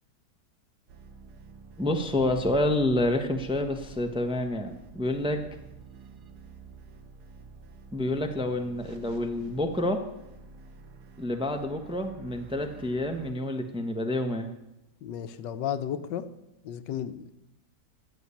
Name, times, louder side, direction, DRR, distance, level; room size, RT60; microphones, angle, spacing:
sound 1, 0.9-13.3, right 3 dB, 65° right, 1.6 m, -48 dB
voice 1, 1.8-5.4 7.9-10.0 11.2-14.5, left 1 dB, 5° right, 5 dB, 0.8 m, -28 dB
voice 2, 15.0-16.3 16.6-17.3, left 9 dB, 85° left, 12 dB, 1.5 m, -33 dB
14.0 x 7.7 x 8.4 m, 0.90 s
omnidirectional pair, 1.9 m